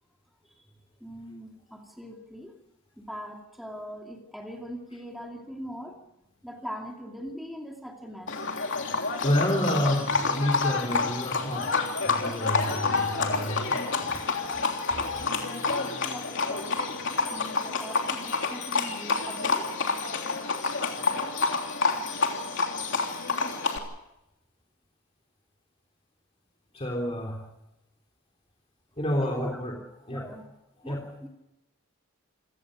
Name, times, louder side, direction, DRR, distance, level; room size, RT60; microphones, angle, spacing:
voice 1, 1.0-2.5 3.0-6.0 6.4-8.3 15.7-17.0 17.3-19.7 29.2-29.6 30.1-30.5 30.8-31.3, equal, ahead, 1 dB, 2.5 m, -41 dB
Livestock farm animals working animals, 8.3-23.8, left 4 dB, 55° left, 3.3 m, -28 dB
voice 2, 9.2-14.2 15.0-15.1 26.7-27.5 29.0-29.8 30.1-30.3 30.8-31.1, equal, 25° left, 0 dB, 3.4 m, -29 dB
28.5 x 17.5 x 6.6 m, 0.92 s
head